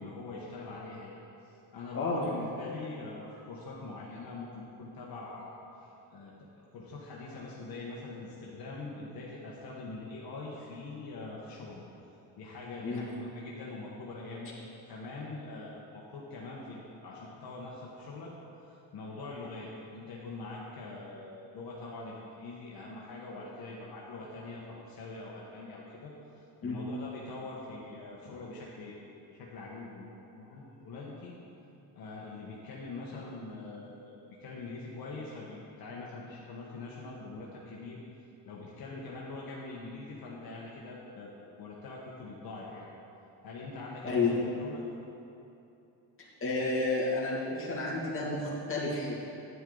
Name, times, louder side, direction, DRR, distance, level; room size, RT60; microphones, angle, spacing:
voice 1, 0.0-6.3 6.7-11.8 12.4-18.3 18.6-26.1 26.6-28.9 29.3-31.3 31.9-38.0 38.4-41.3 41.6-42.9 43.4-44.8, left 3 dB, 60° left, -4 dB, 1.3 m, -43 dB
voice 2, 46.4-49.1, left 3 dB, 30° left, -6 dB, 2.2 m, -30 dB
11.0 x 9.1 x 3.9 m, 2.8 s
cardioid pair, 150°, 40 cm